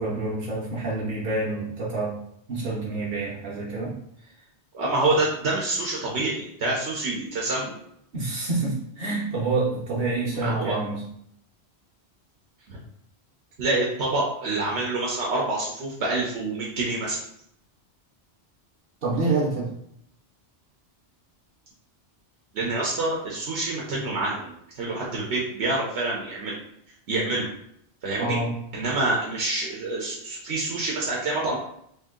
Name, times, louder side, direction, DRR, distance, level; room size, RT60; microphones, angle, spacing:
voice 1, 0.0-2.2 2.5-3.9 8.1-11.0 19.0-19.7 28.2-28.5, right 3 dB, 55° right, -6 dB, 0.9 m, -27 dB
voice 2, 4.7-7.7 10.4-10.8 12.7-12.8 13.6-17.2 22.5-24.5 24.8-26.5 27.1-27.5 28.0-28.4 28.7-31.6, right 2 dB, 90° right, -4 dB, 1.0 m, -27 dB
3.1 x 2.6 x 3.6 m, 0.72 s
omnidirectional pair, 1.1 m